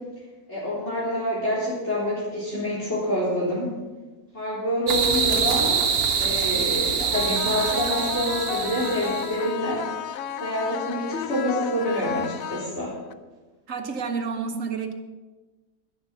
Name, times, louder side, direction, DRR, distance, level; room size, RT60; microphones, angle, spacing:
voice 1, 0.5-3.7 4.3-5.8 6.1-9.8 10.4-12.9, equal, 50° left, -8 dB, 4.2 m, -27 dB
sound 1, 4.9-9.4, right 6 dB, 90° right, 1.5 m, -25 dB
sound 2, 7.1-13.1, left 9 dB, 75° left, 1.1 m, -33 dB
voice 2, 13.7-14.9, right 5 dB, 65° right, 6 dB, 1.5 m, -29 dB
11.5 x 11.0 x 5.8 m, 1.2 s
omnidirectional pair, 1.5 m